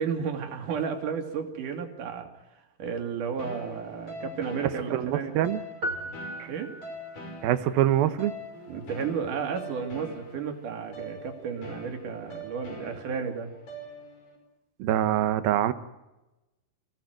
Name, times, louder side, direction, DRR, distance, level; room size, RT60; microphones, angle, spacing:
voice 1, 0.0-2.3 2.8-5.5 6.0-6.1 6.5-6.7 8.7-13.5, right 6 dB, 55° right, 4 dB, 4.0 m, -32 dB
sound 1, 3.4-14.4, equal, 55° left, 7.1 m, -43 dB
voice 2, 4.9-5.6 6.4-6.5 7.4-8.3 14.8-15.7, right 12 dB, 75° right, 11 dB, 2.8 m, -24 dB
sound 2, 5.8-7.3, equal, 30° right, 2.2 m, -36 dB
26.0 x 17.5 x 9.3 m, 1.0 s
omnidirectional pair, 4.5 m